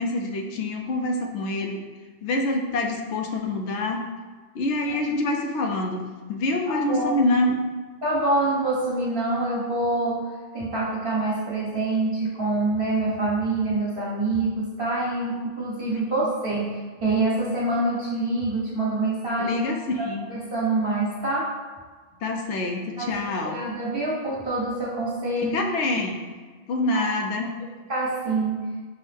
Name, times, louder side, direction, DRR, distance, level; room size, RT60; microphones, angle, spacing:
voice 1, 0.0-1.8 2.2-4.1 4.5-7.5 15.9-16.3 19.4-20.3 22.2-23.6 25.4-26.2 26.7-27.5, left 2 dB, 75° left, 3 dB, 0.9 m, -26 dB
voice 2, 6.7-7.2 8.0-19.6 20.0-21.5 23.0-23.1 23.4-25.5 26.9-27.1 27.9-28.7, right 2 dB, 55° right, -8 dB, 1.4 m, -26 dB
6.1 x 2.1 x 3.3 m, 1.4 s
omnidirectional pair, 1.2 m